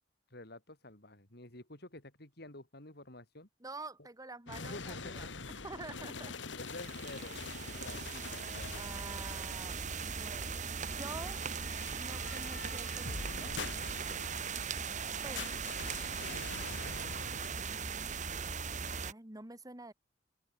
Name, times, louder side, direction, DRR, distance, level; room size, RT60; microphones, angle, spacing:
voice 1, 0.3-3.5 4.6-5.3 6.5-8.7 14.4-14.7, left 1 dB, 60° left, 5.1 m, -50 dB
voice 2, 3.6-5.3 5.6-6.4 8.7-11.4 12.0-13.5 15.2-15.6 17.3-19.9, right 2 dB, 20° right, 2.2 m, -48 dB
sound 1, 4.5-17.5, left 4 dB, 85° left, 1.8 m, -46 dB
sound 2, 6.6-19.1, right 6 dB, 45° right, 1.5 m, -39 dB
open air
head